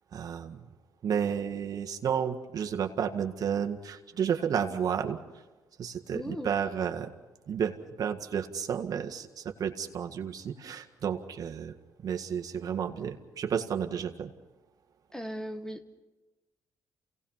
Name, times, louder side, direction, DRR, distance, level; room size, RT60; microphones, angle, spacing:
voice 1, 0.1-0.6 1.0-5.2 5.8-7.1 7.5-11.7 12.0-14.3, right 8 dB, 55° right, 4 dB, 1.8 m, -32 dB
voice 2, 6.1-6.5 15.1-15.8, equal, 10° left, 8 dB, 1.6 m, -37 dB
28.5 x 18.0 x 5.8 m, 1.1 s
cardioid pair, 90°, 7 cm